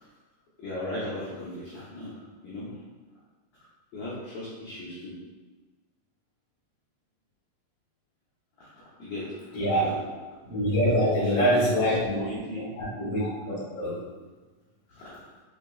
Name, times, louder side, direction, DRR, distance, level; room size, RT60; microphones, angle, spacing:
voice 1, 0.6-2.1 2.4-2.7 3.9-5.1 8.6-8.7 9.0-9.5 10.9-11.7 12.2-12.7 14.9-15.2, left 1 dB, 80° left, -10 dB, 1.5 m, -37 dB
voice 2, 9.5-10.1 10.4-12.2 12.8-14.0, equal, 60° left, -8 dB, 2.2 m, -25 dB
6.4 x 2.8 x 2.2 m, 1.3 s
omnidirectional pair, 4.1 m